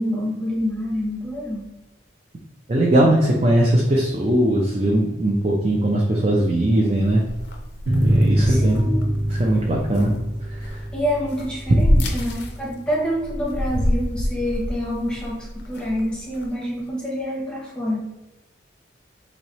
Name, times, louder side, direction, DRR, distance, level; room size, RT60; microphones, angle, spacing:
voice 1, 0.0-1.6 8.4-9.0 10.9-18.0, equal, 5° left, -3 dB, 0.8 m, -27 dB
voice 2, 2.7-7.2 8.0-9.0 9.3-10.1 10.5-10.8, right 1 dB, 30° right, -2 dB, 0.4 m, -20 dB
sound 1, 7.0-16.8, left 1 dB, 55° left, 0.5 m, -28 dB
sound 2, 7.9-13.0, right 1 dB, 75° right, 1.2 m, -24 dB
3.1 x 2.7 x 4.1 m, 1.0 s
head